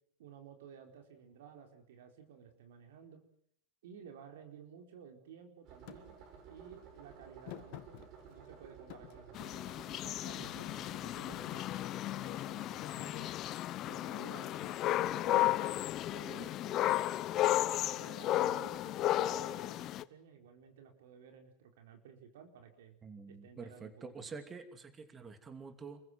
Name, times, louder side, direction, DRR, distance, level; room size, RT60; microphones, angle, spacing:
voice 1, 0.2-3.2 3.8-6.1 6.5-8.0 8.3-9.5 10.0-13.3 13.8-14.8 15.3-15.5 16.1-17.0 17.8-23.0 23.3-24.3, right 7 dB, 75° right, 5 dB, 4.3 m, -54 dB
sound 1, 5.6-12.8, right 6 dB, 50° right, 7.1 m, -55 dB
Thump thud, 5.9-6.0 7.5-8.5 8.9-9.9 10.3-11.7 12.3-12.5 12.8-13.2 14.6-15.7, left 18 dB, 60° left, 1.7 m, -51 dB
sound 2, 9.3-20.0, left 14 dB, 45° left, 1.0 m, -34 dB
voice 2, 23.0-26.0, right 4 dB, 20° right, 9 dB, 2.9 m, -47 dB
28.5 x 15.5 x 9.2 m, 0.67 s
hypercardioid pair, 105°, 0 cm